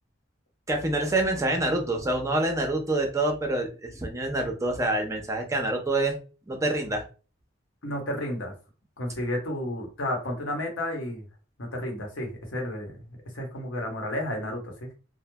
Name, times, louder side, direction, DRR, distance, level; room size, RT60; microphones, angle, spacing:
voice 1, 0.7-6.2 6.5-7.0, right 2 dB, 15° right, 2 dB, 0.5 m, -26 dB
voice 2, 7.8-8.5 9.0-11.2 11.6-14.9, left 1 dB, 90° left, 1 dB, 0.9 m, -32 dB
3.0 x 2.0 x 2.2 m, 0.34 s
head